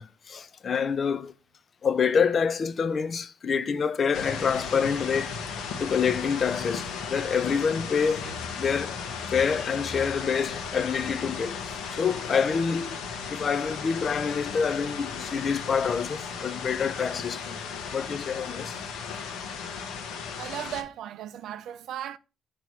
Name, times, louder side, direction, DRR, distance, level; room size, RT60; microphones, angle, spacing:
voice 1, 0.0-1.3 1.8-5.4 5.8-9.0 9.3-13.0 13.3-17.6 17.9-18.8, left 6 dB, 40° left, 0.4 m, -27 dB
sound 1, 4.1-20.8, left 6 dB, 85° left, 0.9 m, -35 dB
voice 2, 20.4-22.2, right 11 dB, 75° right, 0.4 m, -36 dB
6.1 x 2.9 x 5.4 m
cardioid pair, 125°, 0 cm